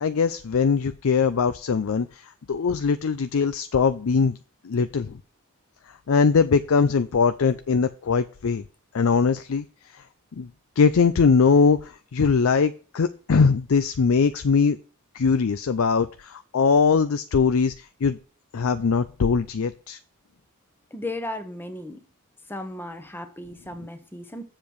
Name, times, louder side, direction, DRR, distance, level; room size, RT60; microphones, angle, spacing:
voice 1, 0.0-4.4 4.6-5.2 6.1-8.6 8.9-9.6 9.9-10.0 10.3-10.5 10.8-14.8 15.1-18.2 18.5-20.0, left 5 dB, 65° left, 11 dB, 0.5 m, -21 dB
voice 2, 20.9-22.0 22.5-24.4, left 1 dB, 10° left, 8 dB, 1.0 m, -35 dB
7.5 x 6.7 x 4.6 m, 0.38 s
head